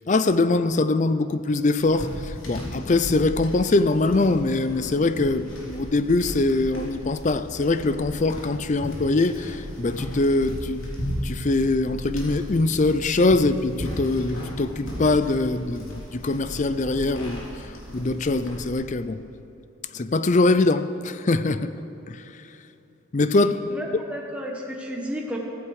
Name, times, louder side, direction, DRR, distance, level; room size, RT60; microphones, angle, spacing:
voice 1, 0.1-10.9 11.2-19.2 19.9-21.7 22.1-22.2 23.1-23.7, left 2 dB, 35° left, 13 dB, 0.5 m, -23 dB
sound 1, 1.8-18.7, equal, 75° left, 3.4 m, -36 dB
voice 2, 23.3-25.4, equal, 5° right, -2 dB, 1.3 m, -33 dB
15.5 x 15.0 x 4.8 m, 3.0 s
head